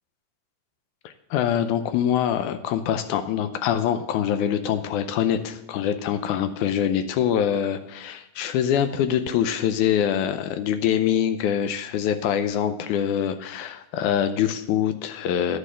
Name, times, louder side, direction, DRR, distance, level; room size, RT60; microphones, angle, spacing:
voice 1, 1.1-15.6, left 9 dB, 80° left, 10 dB, 2.0 m, -24 dB
10.0 x 5.5 x 7.3 m, 0.81 s
omnidirectional pair, 3.8 m